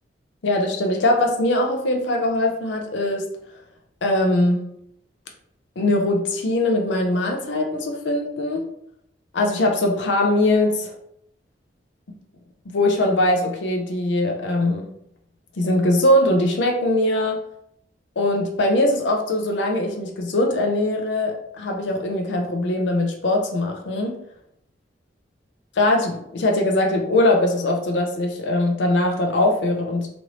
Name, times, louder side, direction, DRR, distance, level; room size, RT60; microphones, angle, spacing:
voice 1, 0.4-3.3 4.0-4.6 5.8-8.7 9.3-10.9 12.7-14.8 15.6-17.4 18.2-24.2 25.8-30.1, left 1 dB, 75° left, 2 dB, 0.5 m, -21 dB
3.0 x 2.6 x 2.9 m, 0.74 s
head